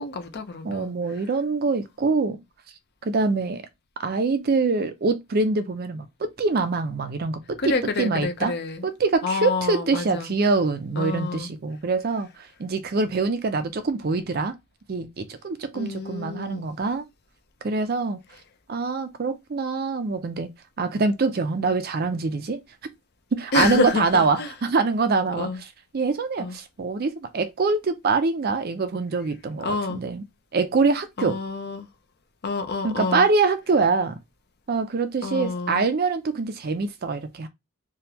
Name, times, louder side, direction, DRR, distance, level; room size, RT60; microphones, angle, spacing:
voice 1, 0.0-0.9 7.6-8.8 9.2-10.3 11.0-11.5 15.7-16.6 23.5-24.0 24.4-24.5 25.4-25.6 26.4-26.5 29.6-30.0 31.2-31.9 32.4-33.2 35.2-35.8, left 3 dB, 45° left, 0.6 m, -28 dB
voice 2, 0.6-2.4 3.0-3.7 4.0-8.5 8.8-14.5 14.9-17.0 17.6-18.2 18.7-20.5 20.8-22.6 23.3-30.2 30.5-31.4 32.8-34.2 34.7-37.5, right 4 dB, 45° right, 0.4 m, -24 dB
3.4 x 2.3 x 2.8 m
head